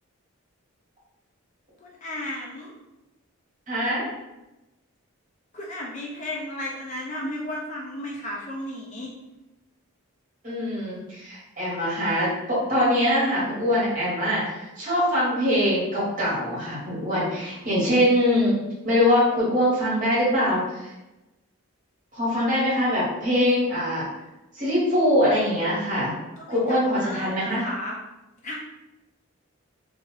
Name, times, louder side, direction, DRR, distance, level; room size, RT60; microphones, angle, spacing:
voice 1, 1.8-2.7 5.5-9.1 26.4-28.0 28.4-28.6, left 1 dB, 35° left, -2 dB, 0.3 m, -34 dB
voice 2, 3.7-4.0 10.4-20.9 22.1-24.1 24.6-26.2 26.5-27.6, equal, 35° right, -7 dB, 1.1 m, -23 dB
2.5 x 2.3 x 3.1 m, 0.99 s
head